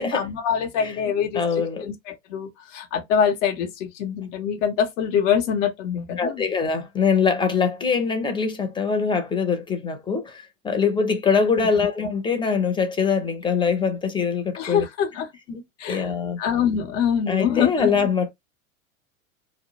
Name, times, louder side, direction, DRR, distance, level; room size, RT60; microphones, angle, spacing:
voice 1, 0.0-6.5 14.5-15.3 15.8-16.1 16.4-18.1, left 8 dB, 65° left, 0.8 m, -24 dB
voice 2, 1.3-1.9 6.2-14.9 15.5-15.6 15.9-16.4 17.3-18.3, left 5 dB, 10° left, 0.5 m, -23 dB
2.2 x 2.0 x 2.8 m
hypercardioid pair, 100°, 39 cm